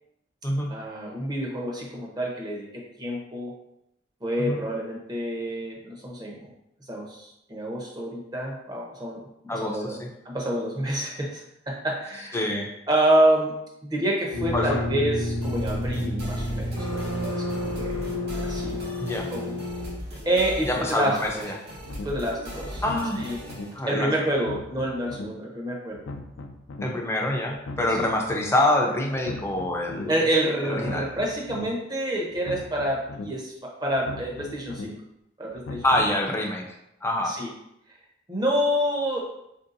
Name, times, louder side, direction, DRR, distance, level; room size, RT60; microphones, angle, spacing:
voice 1, 0.7-3.5 4.2-6.5 6.9-9.2 9.5-10.0 10.2-12.6 12.9-17.9 18.4-18.8 19.3-19.6 20.2-21.4 22.0-22.8 23.2-23.4 23.9-26.1 27.9-28.1 30.1-34.9 35.4-35.8 37.2-37.5 38.3-39.2, right 1 dB, 20° right, -2 dB, 0.7 m, -28 dB
voice 2, 9.5-10.1 12.3-12.7 14.5-14.8 19.0-19.3 20.7-21.5 22.8-23.2 23.7-24.1 26.8-30.1 30.6-31.1 35.8-36.6 37.0-37.4, left 1 dB, 15° left, 1 dB, 0.5 m, -26 dB
sound 1, 14.3-19.9, left 1 dB, 75° right, 1.2 m, -30 dB
sound 2, 15.4-23.8, equal, 60° right, 0.9 m, -38 dB
sound 3, 21.9-22.1 22.7-23.7 24.3-25.3 25.9-26.9 27.5-28.5 29.1-30.1 30.7-31.7 32.3-33.3 33.9-34.9 35.5-36.2, left 2 dB, 80° left, 0.4 m, -39 dB
4.4 x 2.7 x 2.5 m, 0.80 s
head